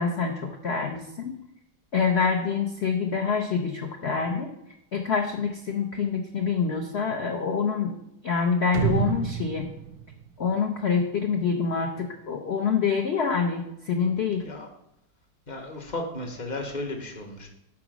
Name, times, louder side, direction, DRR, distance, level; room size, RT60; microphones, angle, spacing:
voice 1, 0.0-1.4 1.9-4.5 4.9-7.9 8.2-9.7 10.4-14.4, left 5 dB, 85° left, 2 dB, 0.5 m, -26 dB
sound 1, 8.7-11.3, right 8 dB, 85° right, 1.4 m, -29 dB
voice 2, 15.5-17.5, left 2 dB, 40° left, 3 dB, 0.6 m, -34 dB
6.1 x 4.8 x 6.0 m, 0.83 s
omnidirectional pair, 2.1 m